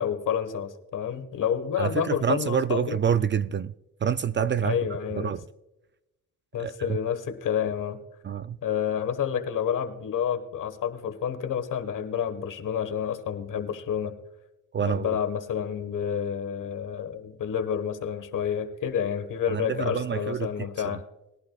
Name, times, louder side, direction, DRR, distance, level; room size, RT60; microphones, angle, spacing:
voice 1, 0.0-3.0 4.6-5.3 6.5-8.0 8.6-14.1 14.8-21.0, left 8 dB, 65° left, 1.4 m, -29 dB
voice 2, 1.8-3.7 4.0-4.8 5.1-5.4 6.6-7.0 8.2-8.6 14.7-15.1 19.5-21.0, right 8 dB, 35° right, 0.4 m, -27 dB
20.5 x 11.5 x 2.3 m
cardioid pair, 80°, 34 cm